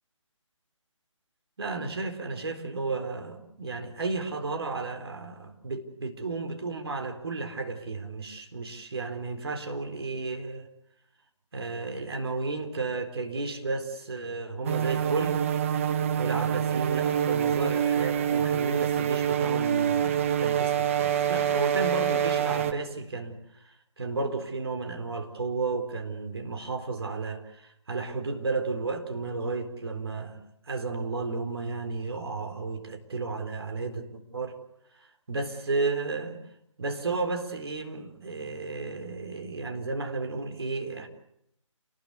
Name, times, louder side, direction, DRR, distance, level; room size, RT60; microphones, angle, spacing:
voice 1, 1.6-10.7 11.5-15.4 16.2-30.4 30.7-34.6 35.3-36.4 36.8-41.1, right 3 dB, 50° right, 4 dB, 4.3 m, -33 dB
sound 1, 14.6-22.7, right 9 dB, 25° right, 1.2 m, -26 dB
28.5 x 20.5 x 8.3 m, 0.78 s
figure-of-eight pair, 145°, 17 cm